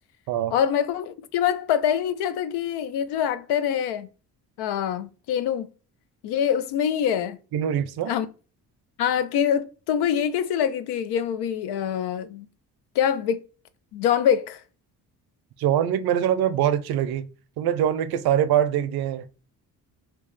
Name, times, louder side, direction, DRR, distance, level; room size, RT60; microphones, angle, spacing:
voice 1, 0.5-4.1 4.6-5.7 6.2-7.4 8.0-8.3 9.0-12.5 13.0-13.4 13.9-14.6, left 9 dB, 75° left, 0.5 m, -24 dB
voice 2, 7.5-8.1 15.6-17.3 17.6-19.2, right 10 dB, 70° right, 0.5 m, -23 dB
2.8 x 2.3 x 3.8 m
supercardioid pair, 65°, 40 cm